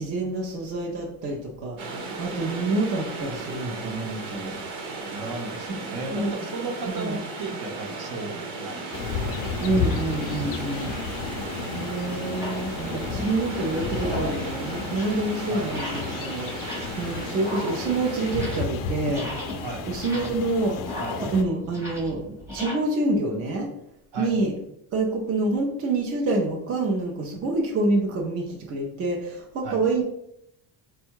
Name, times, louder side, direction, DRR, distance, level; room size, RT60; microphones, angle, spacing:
voice 1, 0.0-1.8 2.2-4.6 6.1-6.3 6.9-7.2 9.6-10.9 11.7-19.3 19.9-20.8 21.3-23.7 24.2-24.5 24.9-30.0, right 2 dB, 30° right, 0 dB, 0.5 m, -27 dB
sound 1, 1.8-18.7, right 3 dB, 80° right, 1.1 m, -36 dB
voice 2, 5.1-9.4 13.1-13.3 14.0-14.2 15.5-15.7 19.6-19.8 20.1-20.4 21.0-21.2 24.1-24.3 29.6-29.8, right 3 dB, 55° right, 4 dB, 0.9 m, -35 dB
sound 2, 8.9-21.4, left 5 dB, 45° left, 0.5 m, -33 dB
sound 3, 10.7-10.8 11.6-11.7 12.2-12.7 13.1-13.5 13.9-14.5 14.8-15.2 15.6-16.2 16.5-17.1 17.3-18.8 19.0-22.7, left 1 dB, 5° right, 0.8 m, -37 dB
4.3 x 2.3 x 4.5 m, 0.77 s
cardioid pair, 165°, 48 cm